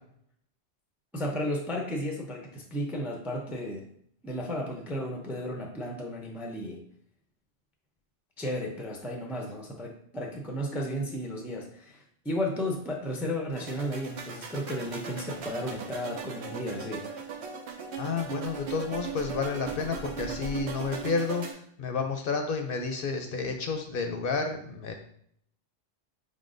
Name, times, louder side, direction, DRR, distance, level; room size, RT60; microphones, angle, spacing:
voice 1, 1.1-3.9 4.2-6.8 8.4-17.0, equal, ahead, 1 dB, 0.4 m, -34 dB
sound 1, 13.5-21.5, right 5 dB, 80° right, 0.9 m, -38 dB
voice 2, 18.0-24.9, left 4 dB, 60° left, 5 dB, 0.7 m, -31 dB
5.1 x 3.7 x 2.5 m, 0.67 s
omnidirectional pair, 1.1 m